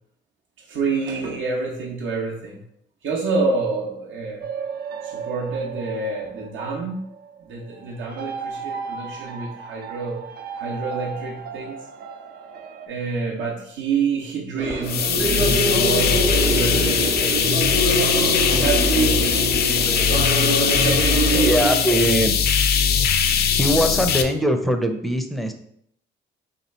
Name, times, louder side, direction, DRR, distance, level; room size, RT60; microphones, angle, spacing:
voice 1, 0.7-2.6 3.0-4.5 5.0-7.0 7.5-10.2 10.6-11.8 12.9-17.3 18.5-19.3 20.7-21.9, right 4 dB, 70° right, -2 dB, 0.9 m, -27 dB
sound 1, 4.4-12.9, right 6 dB, 50° right, 0.4 m, -35 dB
sound 2, 14.6-21.7, right 2 dB, 35° right, 0.9 m, -24 dB
sound 3, 14.8-24.2, left 7 dB, 50° left, 0.4 m, -20 dB
voice 2, 19.8-20.2 21.4-22.7 23.5-25.5, equal, ahead, 6 dB, 0.5 m, -22 dB
3.2 x 2.9 x 4.2 m, 0.69 s
cardioid pair, 90°, 20 cm